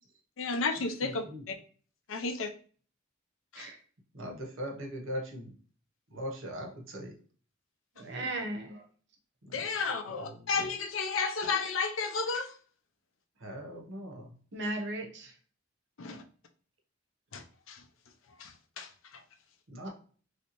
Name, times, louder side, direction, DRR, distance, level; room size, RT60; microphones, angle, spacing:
voice 1, 0.4-1.6 2.1-2.5 3.5-3.7 9.5-12.5 16.0-16.2 17.3-17.8 18.4-18.9, left 4 dB, 80° left, 6 dB, 0.5 m, -33 dB
voice 2, 1.0-1.5 4.1-5.5 6.1-7.1 9.5-9.8 10.1-10.5 13.4-14.3 19.7-19.9, equal, 90° right, 2 dB, 0.9 m, -40 dB
voice 3, 7.9-8.8 14.5-15.3 19.8-19.9, right 1 dB, 60° right, 3 dB, 0.7 m, -36 dB
3.1 x 2.7 x 2.9 m, 0.42 s
head